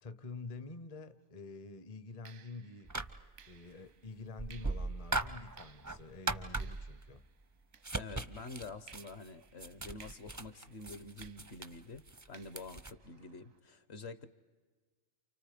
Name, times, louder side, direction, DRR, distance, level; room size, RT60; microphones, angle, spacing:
voice 1, 0.0-3.0 3.5-7.2, left 3 dB, 35° left, 0.7 m, -48 dB
sound 1, 1.1-1.3 2.2-8.4 8.9-13.6, right 8 dB, 80° right, 1.4 m, -62 dB
sound 2, 2.8-3.5 4.4-7.1 7.7-12.9, right 2 dB, 20° right, 0.5 m, -39 dB
voice 2, 8.0-14.3, left 3 dB, 55° left, 1.1 m, -48 dB
29.5 x 29.0 x 5.0 m
omnidirectional pair, 1.4 m